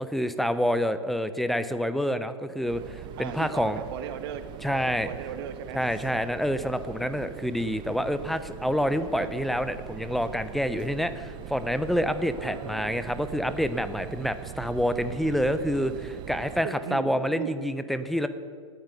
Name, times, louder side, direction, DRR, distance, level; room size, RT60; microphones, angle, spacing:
voice 1, 0.0-3.8 4.6-5.1 5.7-18.3, equal, ahead, 11 dB, 0.8 m, -27 dB
sound 1, 2.7-16.6, right 12 dB, 25° right, 0.6 m, -42 dB
voice 2, 3.2-4.4 4.7-5.8 6.1-6.3 9.2-9.3 12.2-13.1 16.6-17.5, right 9 dB, 50° right, 8 dB, 1.7 m, -38 dB
18.5 x 13.5 x 5.4 m, 2.2 s
figure-of-eight pair, 110°, 17 cm